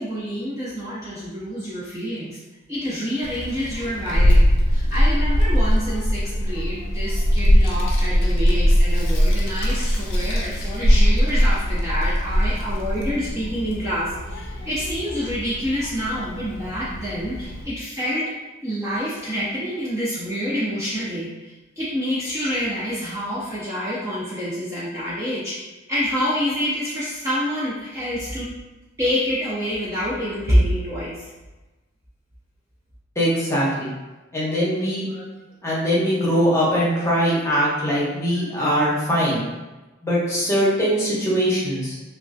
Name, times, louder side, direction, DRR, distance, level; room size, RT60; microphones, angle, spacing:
voice 1, 0.0-2.4 2.7-18.3 18.6-25.6 25.9-28.5 29.0-31.3, equal, 15° right, -8 dB, 0.3 m, -27 dB
Child speech kid speaking, 3.2-17.6, equal, 60° left, 0.5 m, -21 dB
voice 2, 33.2-33.9 34.3-35.2 35.6-39.4 40.0-41.9, equal, 15° left, -6 dB, 0.7 m, -21 dB
3.1 x 2.3 x 2.5 m, 1.1 s
head